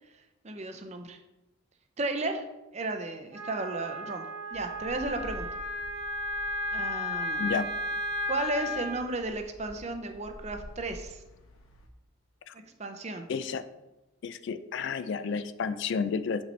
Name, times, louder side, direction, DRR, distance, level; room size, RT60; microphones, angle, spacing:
voice 1, 0.4-1.2 2.0-2.5 2.7-5.5 6.7-7.5 8.3-11.2 12.8-13.3, right 2 dB, 30° right, 6 dB, 0.5 m, -34 dB
Wind instrument woodwind instrument, 3.3-9.0, left 1 dB, 55° right, 1.3 m, -34 dB
sound 1, 4.5-11.9, equal, 75° left, 0.8 m, -49 dB
voice 2, 13.3-13.6 14.2-16.4, left 5 dB, 55° left, 12 dB, 0.3 m, -31 dB
6.6 x 5.0 x 3.3 m, 1.0 s
head